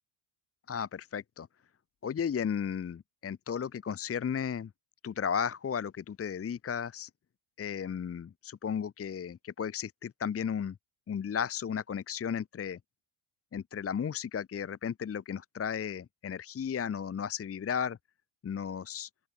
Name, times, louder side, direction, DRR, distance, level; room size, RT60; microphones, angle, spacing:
voice 1, 0.7-1.5 2.0-4.7 5.0-7.1 7.6-10.8 11.1-12.8 13.5-18.0 18.4-19.1, left 7 dB, 30° left, 0.9 m, -34 dB
open air
cardioid pair, 115°, 49 cm